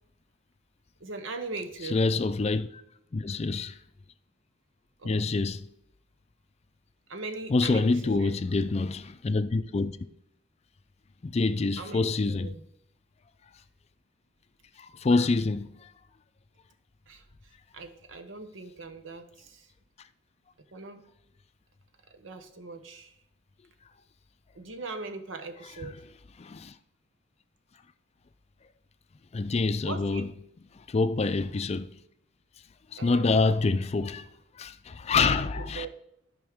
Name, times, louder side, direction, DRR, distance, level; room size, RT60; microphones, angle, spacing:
voice 1, 1.0-2.0 5.0-5.3 7.1-8.3 11.8-12.6 17.1-17.2 17.7-19.7 20.7-21.0 22.1-23.2 24.5-26.0 29.8-30.2 33.0-33.5 35.6-35.9, right 3 dB, 90° right, 1.0 m, -40 dB
voice 2, 1.9-2.8 3.1-3.8 5.0-5.7 7.5-10.0 11.2-12.5 14.8-15.9 25.8-25.9 26.4-26.7 29.3-30.3 30.7-31.9 32.9-34.3 34.5-35.9, left 3 dB, 35° left, 0.4 m, -26 dB
13.0 x 5.3 x 3.6 m
head